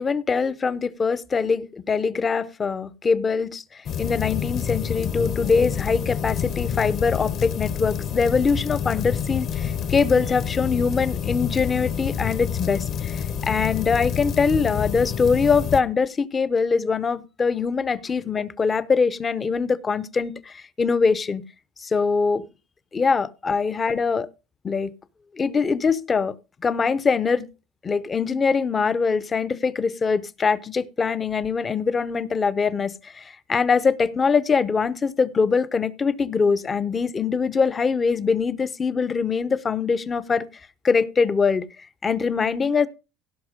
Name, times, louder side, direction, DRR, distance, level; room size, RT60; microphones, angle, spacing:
voice 1, 0.0-21.4 21.8-22.4 22.9-24.3 24.6-24.9 25.3-26.4 26.6-27.5 27.8-40.5 40.8-42.9, left 5 dB, 20° left, 0.7 m, -23 dB
sound 1, 3.8-15.8, left 8 dB, 40° left, 1.0 m, -28 dB
16.5 x 6.0 x 5.1 m
cardioid pair, 150°, 0 cm